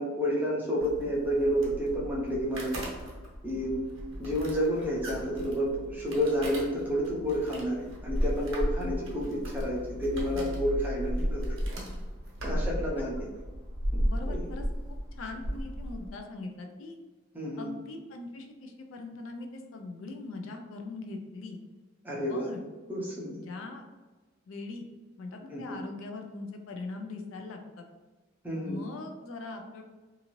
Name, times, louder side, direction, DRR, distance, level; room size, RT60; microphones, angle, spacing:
voice 1, 0.0-2.7 3.4-3.8 4.2-11.7 12.4-13.1 13.9-14.5 17.3-17.7 22.0-22.5 22.9-23.4 25.5-25.8 28.4-28.8, equal, 10° right, -5 dB, 0.5 m, -30 dB
sound 1, 0.8-16.1, equal, 75° right, 0.8 m, -35 dB
voice 2, 14.1-14.7 15.1-17.0 17.6-21.6 22.3-22.6 23.3-23.8 24.5-24.9 25.2-27.9 28.6-29.8, left 3 dB, 75° left, 4 dB, 0.4 m, -41 dB
2.6 x 2.4 x 2.9 m, 1.2 s
head